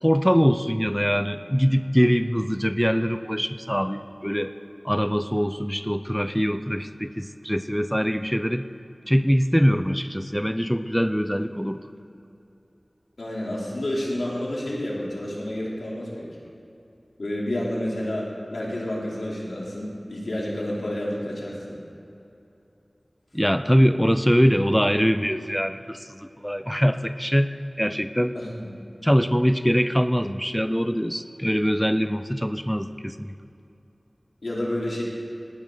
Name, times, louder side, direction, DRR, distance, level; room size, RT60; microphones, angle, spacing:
voice 1, 0.0-4.5 4.8-8.7 9.1-11.8 23.3-28.4 29.0-33.3, equal, ahead, 10 dB, 0.6 m, -23 dB
voice 2, 13.2-16.3 17.2-21.8 28.3-28.7 34.4-35.0, left 1 dB, 90° left, -5 dB, 3.5 m, -30 dB
19.5 x 18.5 x 4.0 m, 2.8 s
wide cardioid pair, 55°, 0 cm